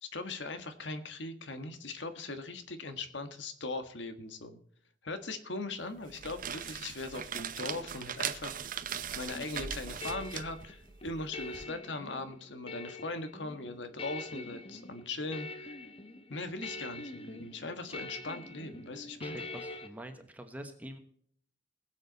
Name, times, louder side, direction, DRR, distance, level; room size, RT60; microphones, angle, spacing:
voice 1, 0.0-4.6 5.0-8.8 9.1-15.8 16.3-19.4, left 2 dB, 70° left, 9 dB, 1.5 m, -40 dB
sound 1, 6.0-11.6, right 8 dB, 45° right, 0.8 m, -40 dB
sound 2, 9.3-19.9, left 2 dB, 30° left, 1.0 m, -45 dB
voice 2, 19.2-21.0, right 1 dB, 10° right, 6 dB, 1.1 m, -46 dB
20.5 x 7.8 x 4.0 m, 0.63 s
head